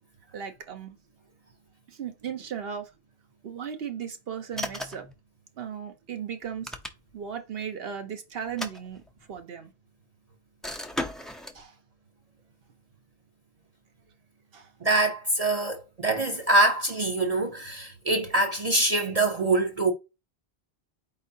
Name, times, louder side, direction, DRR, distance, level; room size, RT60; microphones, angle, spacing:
voice 1, 0.3-1.0 1.9-2.9 3.4-5.1 5.6-6.7 7.1-9.0 9.3-9.7 11.5-11.8 14.5-14.7, right 8 dB, 70° right, 0.9 m, -36 dB
sound 1, 4.5-5.1 6.4-7.3 8.4-9.4 10.6-11.6, left 1 dB, ahead, 0.4 m, -36 dB
voice 2, 14.8-19.9, right 2 dB, 40° right, 0.7 m, -24 dB
4.6 x 3.7 x 2.7 m
omnidirectional pair, 1.1 m